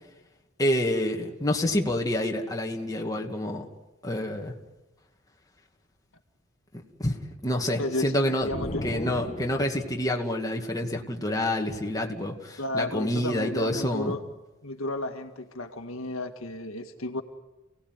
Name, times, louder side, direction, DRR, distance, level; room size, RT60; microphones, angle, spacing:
voice 1, 0.6-3.6 4.0-4.5 7.0-8.5 8.8-14.2, left 1 dB, 15° left, 1 dB, 2.4 m, -28 dB
voice 2, 7.8-8.1 8.4-8.8 12.6-14.2 14.6-17.2, left 2 dB, 75° left, 6 dB, 1.9 m, -33 dB
sound 1, 8.4-10.0, left 1 dB, 30° left, 1.3 m, -35 dB
28.5 x 18.0 x 9.6 m, 1.1 s
head